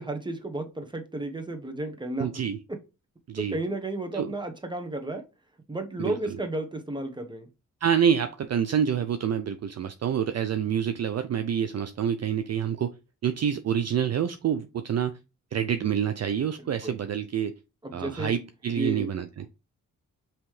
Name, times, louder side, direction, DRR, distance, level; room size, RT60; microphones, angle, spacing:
voice 1, 0.0-2.4 3.4-5.2 5.7-7.5 16.8-17.0 17.8-18.3 18.8-19.1, right 2 dB, 15° right, 1.0 m, -33 dB
voice 2, 2.2-2.6 3.3-3.6 4.1-4.3 6.0-6.1 7.8-12.9 13.2-15.1 15.5-17.6 17.9-19.5, right 8 dB, 50° right, 0.4 m, -27 dB
5.4 x 3.0 x 3.1 m
cardioid pair, 85°, 33 cm